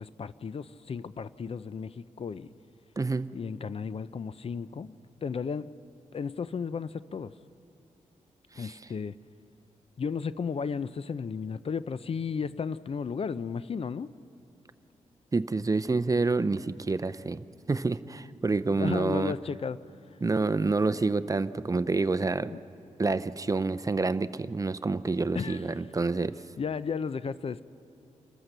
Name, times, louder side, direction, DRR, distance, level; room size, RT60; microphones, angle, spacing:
voice 1, 0.0-2.5 3.3-4.9 5.2-5.7 6.1-7.3 8.5-9.2 10.0-14.1 18.7-19.8 22.4-22.6 25.3-25.6 26.6-27.6, left 6 dB, 50° left, 16 dB, 0.5 m, -34 dB
voice 2, 3.0-3.3 8.5-8.8 15.3-19.3 20.2-22.5 23.0-26.4, right 3 dB, 25° right, 14 dB, 0.6 m, -28 dB
28.0 x 14.0 x 6.7 m, 2.7 s
cardioid pair, 75°, 13 cm